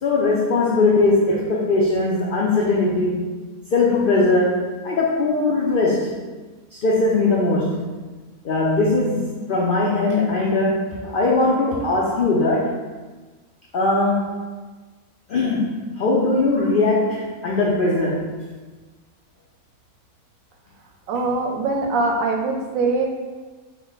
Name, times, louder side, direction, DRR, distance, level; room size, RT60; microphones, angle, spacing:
voice 1, 0.0-3.2 3.7-6.2 6.7-7.9 8.4-12.8 13.7-14.3 15.3-18.3, left 2 dB, 75° left, -4 dB, 0.4 m, -20 dB
voice 2, 21.1-23.1, right 3 dB, 70° right, 2 dB, 0.9 m, -22 dB
4.8 x 2.1 x 3.9 m, 1.3 s
omnidirectional pair, 1.6 m